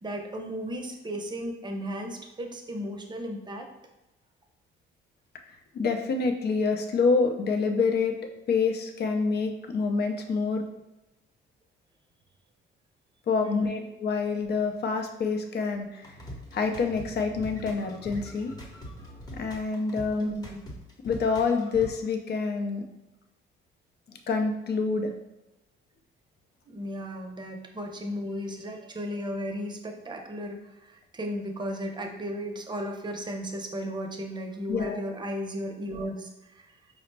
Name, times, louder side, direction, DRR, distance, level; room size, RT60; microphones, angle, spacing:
voice 1, 0.0-3.7 13.4-13.8 20.2-20.6 26.7-36.7, equal, 20° right, 3 dB, 0.6 m, -35 dB
voice 2, 5.7-8.2 8.5-10.7 13.3-16.2 16.5-18.5 19.3-20.3 21.0-22.8 24.1-25.1 34.7-35.0, left 4 dB, 55° left, 5 dB, 0.6 m, -27 dB
sound 1, 16.0-21.9, equal, 20° left, 0.9 m, -43 dB
4.9 x 2.1 x 3.2 m, 0.97 s
cardioid pair, 90°, 20 cm